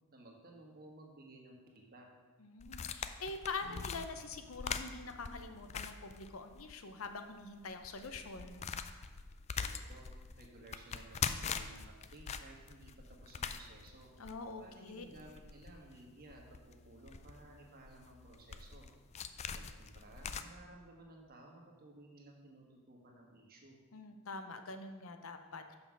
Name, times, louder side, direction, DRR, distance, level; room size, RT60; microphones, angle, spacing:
voice 1, 0.1-2.1 9.5-10.1 10.4-14.1 14.6-18.9 19.5-23.8, right 2 dB, 45° right, 0 dB, 1.4 m, -56 dB
voice 2, 2.4-8.6 14.2-15.0 23.9-25.8, left 3 dB, 75° left, 7 dB, 0.7 m, -45 dB
sound 1, 2.6-6.7 7.0-7.1 7.6-20.4, left 6 dB, 30° left, 0.3 m, -43 dB
Acoustic guitar / Strum, 3.6-7.6, left 1 dB, 70° right, 2.1 m, -59 dB
6.7 x 5.7 x 6.2 m, 1.4 s
head